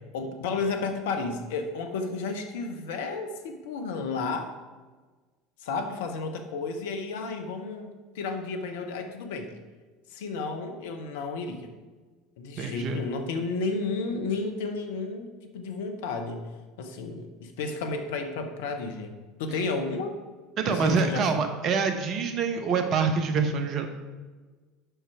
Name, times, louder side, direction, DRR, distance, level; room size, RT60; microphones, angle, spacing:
voice 1, 0.1-4.6 5.6-9.5 10.1-11.7 12.4-16.4 16.8-20.1 20.7-21.2, left 3 dB, 65° left, 5 dB, 0.9 m, -32 dB
voice 2, 12.6-13.0 20.6-23.9, right 5 dB, 45° right, 7 dB, 1.0 m, -26 dB
8.0 x 5.9 x 4.6 m, 1.3 s
figure-of-eight pair, 70°, 0 cm